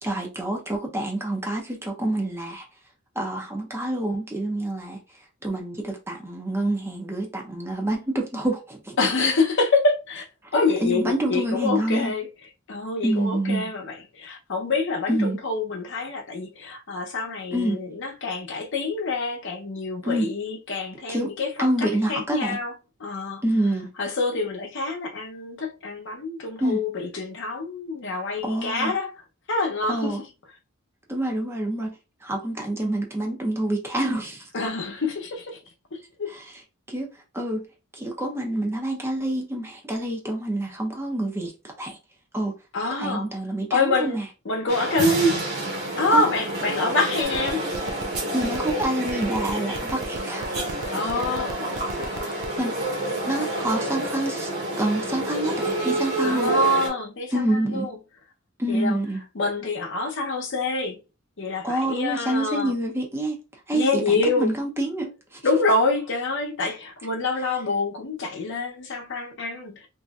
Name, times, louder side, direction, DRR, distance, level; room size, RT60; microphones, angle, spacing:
voice 1, 0.0-2.7 3.2-5.0 5.4-9.0 10.8-12.1 13.0-13.7 15.1-15.4 17.5-17.8 20.0-20.3 21.1-21.3 21.6-22.6 23.4-23.9 26.6-26.8 28.4-28.9 29.9-30.2 31.1-31.9 32.2-34.5 36.3-36.5 36.9-37.7 37.9-42.0 42.3-42.5 42.9-44.2 46.1-46.3 48.3-50.6 52.6-52.8 53.2-54.5 54.7-56.5 57.3-57.9 58.6-59.2 61.6-63.4 63.7-65.4, right 1 dB, 10° right, 0.6 m, -27 dB
voice 2, 9.0-10.2 10.5-12.3 12.7-22.7 23.0-23.4 24.0-29.1 29.5-30.3 34.5-35.6 35.9-36.3 42.7-43.3 43.7-45.4 46.0-47.6 50.9-52.3 53.4-53.5 56.2-58.0 58.7-59.0 59.3-61.0 61.4-62.7 63.7-64.5 65.4-69.9, left 2 dB, 60° left, 0.7 m, -26 dB
sound 1, 44.7-56.9, right 1 dB, 50° right, 1.3 m, -29 dB
sound 2, 47.2-52.6, right 6 dB, 75° right, 0.4 m, -36 dB
3.0 x 2.7 x 2.3 m
head